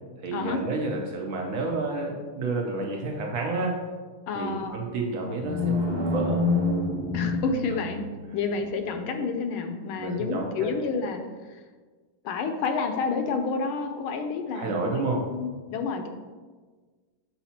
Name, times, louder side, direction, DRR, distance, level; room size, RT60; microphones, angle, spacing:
voice 1, 0.2-3.8 4.3-6.4 10.0-10.5 14.5-15.2, right 3 dB, 75° right, 0 dB, 0.7 m, -30 dB
voice 2, 4.3-4.8 7.1-8.0 8.3-11.2 11.5-11.6 12.2-16.1, left 4 dB, 80° left, 6 dB, 1.5 m, -29 dB
sound 1, 5.3-8.3, left 3 dB, 20° right, 0.6 m, -27 dB
7.1 x 5.7 x 2.8 m, 1.4 s
omnidirectional pair, 2.4 m